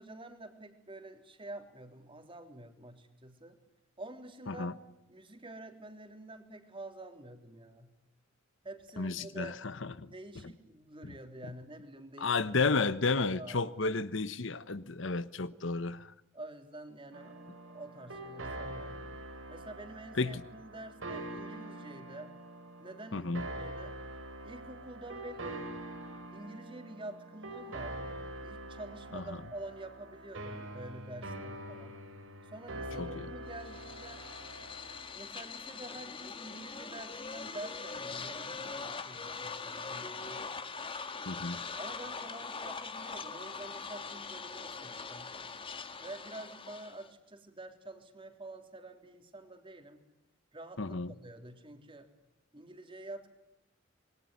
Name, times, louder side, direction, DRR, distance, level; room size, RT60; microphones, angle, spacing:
voice 1, 0.0-3.6 4.0-4.8 5.1-8.0 8.6-9.6 10.0-12.4 13.1-13.9 16.3-19.1 19.5-22.3 22.8-24.0 24.4-25.8 26.3-32.0 32.4-34.2 35.1-40.5 41.7-45.4 46.0-50.0 50.5-52.1 52.5-53.3, right 2 dB, 25° right, 3.3 m, -48 dB
voice 2, 9.0-10.1 12.2-16.1 20.2-20.4 23.1-23.4 29.1-29.2 33.0-33.3 41.3-41.6 50.8-51.1, left 4 dB, 70° left, 1.1 m, -32 dB
sound 1, 17.1-35.1, right 1 dB, 85° right, 6.0 m, -44 dB
sound 2, 33.5-47.1, left 4 dB, 25° left, 1.5 m, -42 dB
26.5 x 22.0 x 9.6 m
head